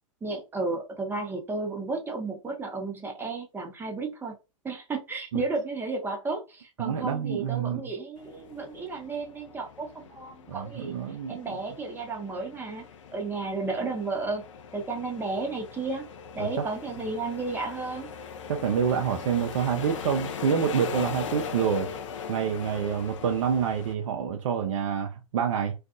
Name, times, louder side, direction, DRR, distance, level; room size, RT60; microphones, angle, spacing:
voice 1, 0.2-4.3 4.6-10.9 11.3-12.8 13.1-14.4 14.7-16.1 16.4-18.1, right 3 dB, 10° right, 0.8 m, -33 dB
voice 2, 6.8-7.8 10.5-11.6 16.4-16.7 18.5-21.9 22.3-25.7, right 7 dB, 65° right, 0.5 m, -27 dB
sound 1, 8.2-23.9, left 6 dB, 65° left, 0.5 m, -40 dB
2.5 x 2.3 x 2.5 m
hypercardioid pair, 105°, 17 cm